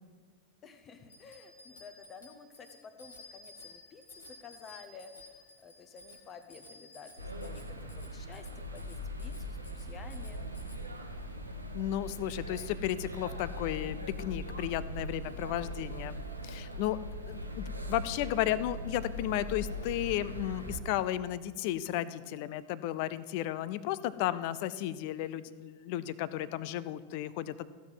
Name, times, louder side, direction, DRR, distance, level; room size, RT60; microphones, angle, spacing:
voice 1, 0.6-10.4, left 5 dB, 30° left, 9 dB, 1.1 m, -52 dB
Bicycle bell, 1.1-10.8, left 2 dB, 75° left, 1.7 m, -54 dB
sound 1, 7.2-20.8, equal, 85° right, 1.1 m, -40 dB
voice 2, 11.7-16.2 16.4-17.0 17.3-27.7, left 13 dB, 45° left, 16 dB, 0.5 m, -34 dB
15.0 x 6.2 x 7.4 m, 1.5 s
figure-of-eight pair, 90°, 0 cm